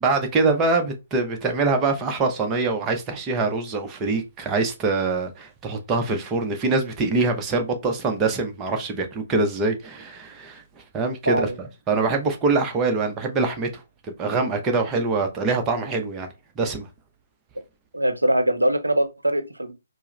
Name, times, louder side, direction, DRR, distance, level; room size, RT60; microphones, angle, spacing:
voice 1, 0.0-10.6 10.9-13.8 14.2-16.3 16.6-16.9, right 3 dB, 15° right, 0.7 m, -24 dB
voice 2, 11.3-11.6 17.9-19.7, right 1 dB, 80° right, 0.6 m, -22 dB
4.6 x 2.0 x 3.2 m
figure-of-eight pair, 135°, 0 cm